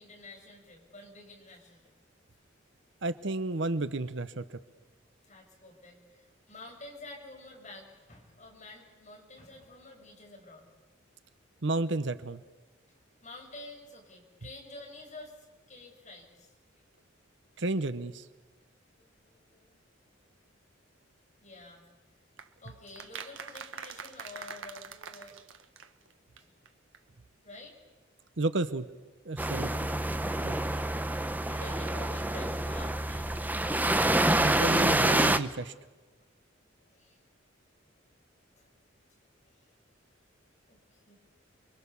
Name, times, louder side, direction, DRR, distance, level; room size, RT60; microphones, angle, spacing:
voice 1, 0.0-1.9 5.2-10.7 13.2-16.5 19.0-19.8 21.4-21.8 22.6-25.6 26.4-26.5 27.4-27.8 31.2-33.5 36.9-37.2 38.6-38.7 39.4-39.7 40.7-41.2, left 2 dB, 35° left, 0 dB, 6.5 m, -49 dB
voice 2, 3.0-4.6 11.6-12.4 17.6-18.2 28.4-28.9 29.3-29.7 30.4-30.5 34.4-35.7, right 2 dB, 65° right, 12 dB, 1.0 m, -31 dB
sound 1, 22.4-26.4 26.7-26.8 26.9-27.0, right 6 dB, 85° right, 1.4 m, -44 dB
sound 2, 29.4-35.4, right 1 dB, 10° right, 0.8 m, -27 dB
29.5 x 23.0 x 7.0 m, 1.2 s
head